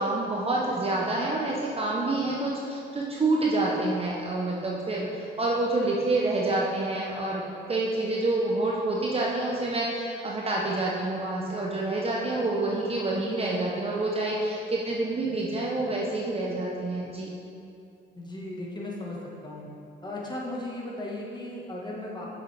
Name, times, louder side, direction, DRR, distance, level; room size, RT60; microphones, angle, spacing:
voice 1, 0.0-7.4 7.7-17.3, right 2 dB, 30° right, -3 dB, 0.8 m, -27 dB
voice 2, 18.1-19.7 20.0-22.3, left 1 dB, 20° left, -3 dB, 1.4 m, -36 dB
6.9 x 6.5 x 3.4 m, 2.6 s
cardioid pair, 90°, 20 cm